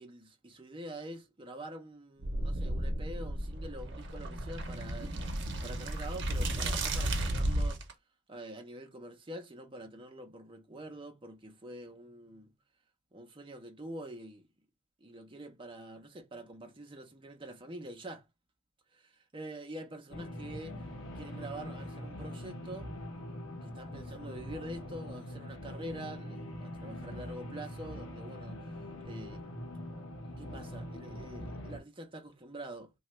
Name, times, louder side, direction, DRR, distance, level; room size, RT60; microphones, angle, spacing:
voice 1, 0.0-7.8 8.3-12.5 13.1-14.5 15.0-18.2 19.3-20.8 21.2-23.0 23.6-28.8 29.0-29.5 30.4-32.9, right 1 dB, 25° right, 0.6 m, -46 dB
sound 1, 2.2-7.9, right 1 dB, 60° right, 0.7 m, -33 dB
sound 2, 20.1-31.8, left 1 dB, 75° left, 0.8 m, -43 dB
3.0 x 2.3 x 3.0 m
head